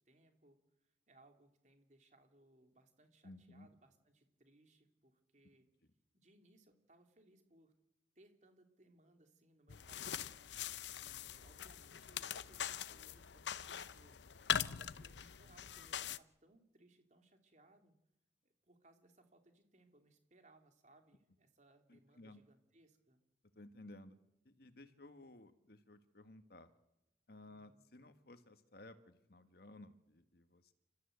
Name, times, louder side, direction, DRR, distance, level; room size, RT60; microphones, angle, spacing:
voice 1, 0.0-5.7 6.1-7.7 8.1-14.2 14.7-17.9 18.4-23.2 27.4-27.9, right 2 dB, 40° right, 5 dB, 3.1 m, -68 dB
voice 2, 3.2-3.7 21.9-22.4 23.5-24.1 24.4-26.7 27.3-30.7, left 2 dB, 60° left, 10 dB, 1.6 m, -57 dB
sound 1, 9.7-16.2, left 9 dB, 75° left, 0.7 m, -42 dB
29.5 x 14.0 x 8.1 m, 0.91 s
head